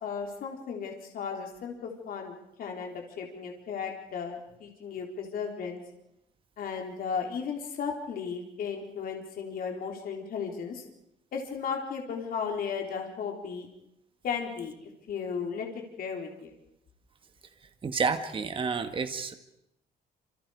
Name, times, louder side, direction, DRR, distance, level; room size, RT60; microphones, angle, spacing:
voice 1, 0.0-5.8 6.6-10.8 11.3-13.7 14.2-16.5, left 6 dB, 60° left, 1 dB, 3.8 m, -35 dB
voice 2, 17.8-19.3, right 5 dB, 30° right, 8 dB, 1.9 m, -30 dB
28.0 x 27.5 x 4.9 m, 0.81 s
cardioid pair, 150°, 17 cm